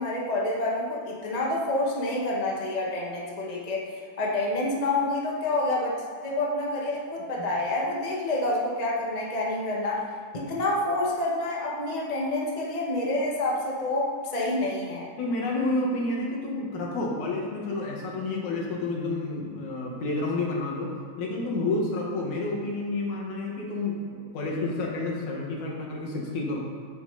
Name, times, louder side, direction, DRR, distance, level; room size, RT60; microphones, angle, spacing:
voice 1, 0.0-5.9 6.2-10.0 10.3-15.1, left 2 dB, 75° left, -4 dB, 0.3 m, -28 dB
voice 2, 15.2-20.9 21.2-26.6, left 2 dB, 55° left, -2 dB, 3.0 m, -30 dB
15.0 x 8.7 x 4.3 m, 2.2 s
omnidirectional pair, 4.3 m